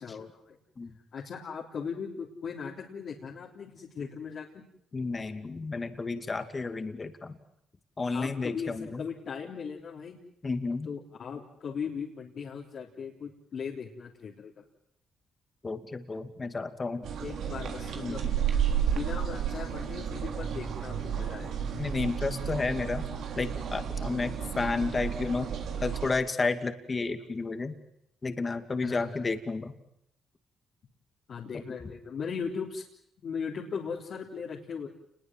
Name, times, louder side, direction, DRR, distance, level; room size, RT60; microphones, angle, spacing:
voice 1, 0.0-0.6 1.1-4.6 8.1-10.2 10.9-14.6 17.2-18.3 18.8-21.6 28.8-29.2 31.3-32.8 33.2-34.9, left 6 dB, 55° left, -2 dB, 3.5 m, -38 dB
voice 2, 4.9-7.4 8.0-9.0 10.4-10.9 15.6-17.1 18.0-18.4 21.8-23.1 23.4-25.5 25.8-27.7 28.2-29.8 31.5-31.6, left 3 dB, 30° left, 8 dB, 2.4 m, -32 dB
sound 1, 17.0-26.1, right 8 dB, 70° right, 3.6 m, -32 dB
29.5 x 21.0 x 7.7 m, 0.78 s
cardioid pair, 90°, 0 cm